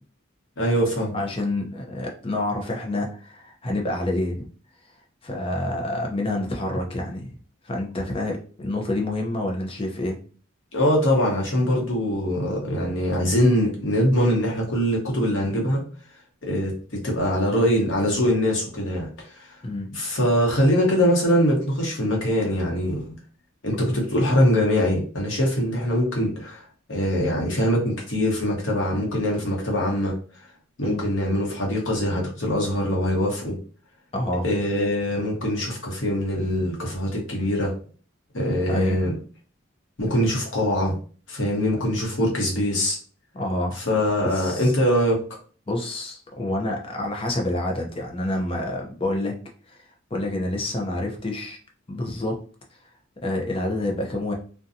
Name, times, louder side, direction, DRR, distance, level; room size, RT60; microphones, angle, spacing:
voice 1, 0.6-1.2 10.7-15.8 16.4-19.5 19.9-23.2 23.6-26.6 26.9-30.1 30.8-33.6 34.4-37.7 38.3-39.1 40.0-40.9 41.3-43.0 43.7-45.2, equal, 65° left, -2 dB, 1.0 m, -23 dB
voice 2, 1.1-4.4 5.2-7.4 7.6-10.2 19.6-19.9 30.8-31.0 34.1-34.5 38.7-39.0 43.3-43.8 44.3-44.7 45.7-49.3 49.7-49.8 50.1-51.6 51.9-52.4 53.2-54.3, left 1 dB, 25° left, 1 dB, 0.5 m, -28 dB
2.6 x 2.2 x 2.5 m, 0.40 s
head